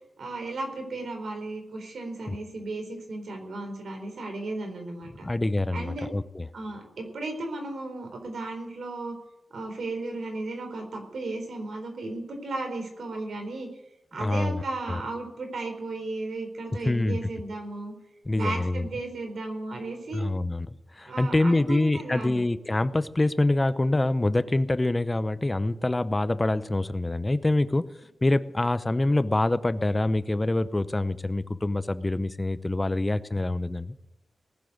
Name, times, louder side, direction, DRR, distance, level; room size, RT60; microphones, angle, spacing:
voice 1, 0.2-5.3 5.7-6.1 6.5-9.2 9.5-13.7 14.1-17.9 18.3-20.3 21.1-22.4, right 2 dB, 85° right, 4 dB, 4.1 m, -35 dB
voice 2, 5.2-6.5 14.2-14.6 14.9-15.0 16.8-17.2 18.3-18.9 20.1-27.9 28.2-33.9, left 2 dB, 25° left, 14 dB, 0.7 m, -25 dB
19.0 x 7.7 x 9.5 m, 0.88 s
wide cardioid pair, 80°, 0 cm